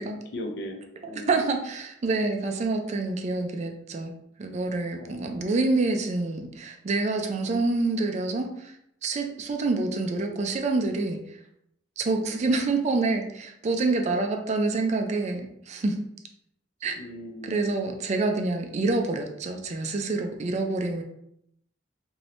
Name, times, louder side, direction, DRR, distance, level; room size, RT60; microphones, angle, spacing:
voice 1, 0.3-1.3 4.9-5.5 12.1-12.3 17.0-17.6, left 1 dB, 60° left, 4 dB, 0.5 m, -39 dB
voice 2, 1.3-8.7 9.0-11.2 12.0-16.0 16.8-16.9 17.4-21.0, right 3 dB, 35° right, 4 dB, 0.4 m, -27 dB
2.8 x 2.6 x 3.1 m, 0.76 s
head